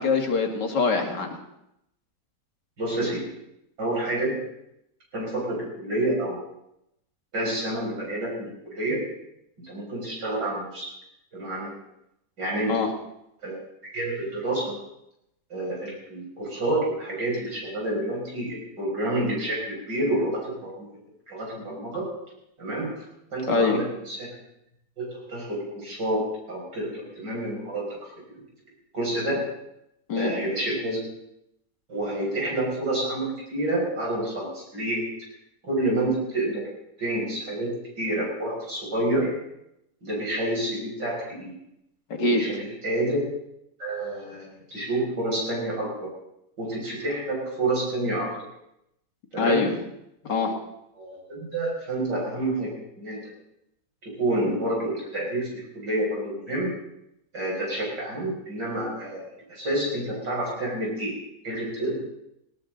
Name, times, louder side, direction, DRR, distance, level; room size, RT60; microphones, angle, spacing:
voice 1, 0.0-1.4 12.7-12.9 23.5-23.8 30.1-30.3 42.1-42.4 49.4-49.7 50.3-50.5, left 4 dB, 75° left, 3 dB, 2.6 m, -23 dB
voice 2, 2.8-3.3 3.8-4.4 5.1-6.4 7.3-9.0 9.6-10.9 11.3-11.7 12.4-12.8 13.4-14.8 15.5-20.9 21.3-22.1 22.6-22.9 23.3-24.3 25.0-27.8 28.9-29.4 30.2-31.0 31.9-35.0 35.6-36.6 37.0-39.3 40.0-41.5 42.2-42.6 42.8-43.2 43.8-46.1 46.6-48.3 49.3-49.7 51.0-52.7 53.0-53.2 54.0-56.7 57.3-59.2 59.5-61.1 61.4-61.9, right 1 dB, 80° right, -3 dB, 6.7 m, -28 dB
18.5 x 18.0 x 3.9 m, 0.82 s
omnidirectional pair, 1.9 m